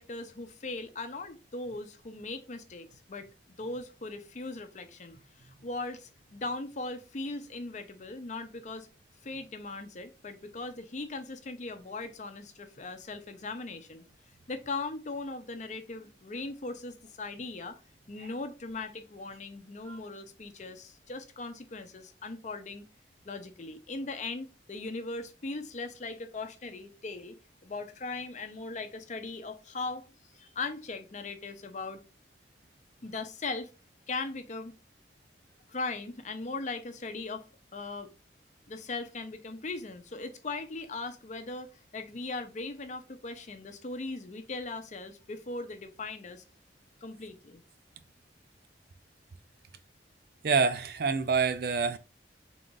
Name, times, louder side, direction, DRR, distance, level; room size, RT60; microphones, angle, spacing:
voice 1, 0.0-3.3 3.6-8.9 9.2-14.0 14.5-17.8 18.1-22.8 23.3-30.1 30.3-32.0 33.0-33.7 34.1-34.7 35.7-37.4 37.7-38.1 38.7-46.4 47.0-47.6, left 3 dB, 40° left, 0.6 m, -39 dB
voice 2, 50.4-52.0, right 5 dB, 60° right, 0.5 m, -27 dB
3.8 x 2.5 x 3.8 m
head